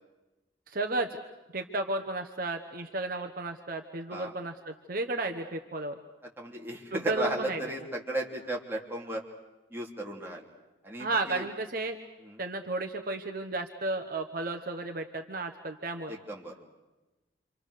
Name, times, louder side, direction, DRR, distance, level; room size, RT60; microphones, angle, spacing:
voice 1, 0.7-1.2 1.5-6.0 6.9-7.6 11.0-12.0 12.4-16.2, right 2 dB, 50° right, 5 dB, 1.1 m, -33 dB
voice 2, 6.4-9.2 9.7-10.4 10.8-11.4 12.2-12.4 16.1-16.5, right 1 dB, 10° right, -2 dB, 3.1 m, -35 dB
28.5 x 25.5 x 6.6 m, 1.1 s
head